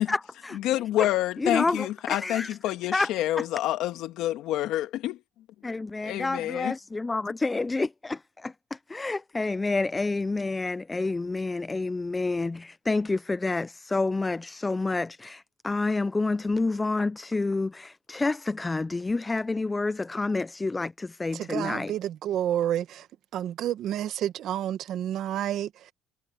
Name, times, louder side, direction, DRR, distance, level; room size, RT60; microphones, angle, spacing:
voice 1, 0.0-0.6 1.4-2.6 2.9-3.1 3.4-3.5 5.6-21.9, left 3 dB, 15° left, 0.3 m, -29 dB
voice 2, 0.5-5.2 6.0-6.7, left 14 dB, 75° left, 2.0 m, -28 dB
voice 3, 21.3-23.1 23.3-25.9, right 11 dB, 65° right, 1.4 m, -30 dB
cardioid pair, 105°, 0 cm